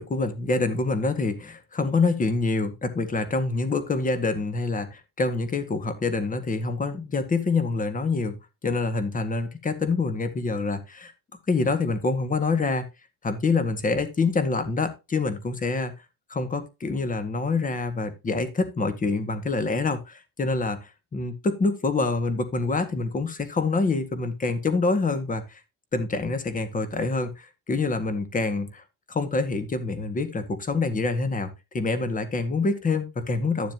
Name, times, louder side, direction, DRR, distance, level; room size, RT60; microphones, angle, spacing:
voice 1, 0.0-8.4 8.6-11.1 11.5-12.9 13.2-15.9 16.3-25.6 25.9-31.5 31.7-33.7, left 3 dB, 25° left, 9 dB, 1.9 m, -26 dB
12.0 x 7.1 x 2.9 m, 0.25 s
cardioid pair, 125°, 29 cm